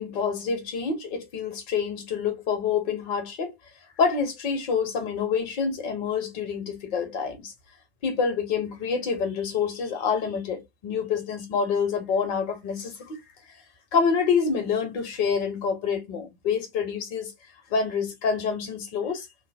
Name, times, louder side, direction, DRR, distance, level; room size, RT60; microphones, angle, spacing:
voice 1, 0.0-3.5 4.0-7.5 8.0-13.2 13.9-17.3 17.7-19.2, left 6 dB, 40° left, 1.4 m, -27 dB
3.2 x 2.1 x 3.6 m
figure-of-eight pair, 100°, 32 cm